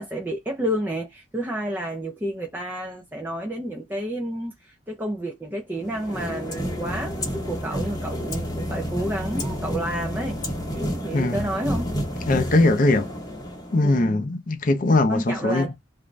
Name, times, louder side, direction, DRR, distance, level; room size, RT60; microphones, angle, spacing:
voice 1, 0.0-10.4 10.7-11.9 12.4-12.6 13.8-14.2 15.1-15.8, right 1 dB, 10° right, 0.4 m, -30 dB
sound 1, 5.8-14.0, equal, 20° left, 0.8 m, -30 dB
voice 2, 11.1-11.5 12.3-13.1 13.7-15.7, left 2 dB, 40° left, 0.5 m, -20 dB
2.5 x 2.1 x 3.1 m
head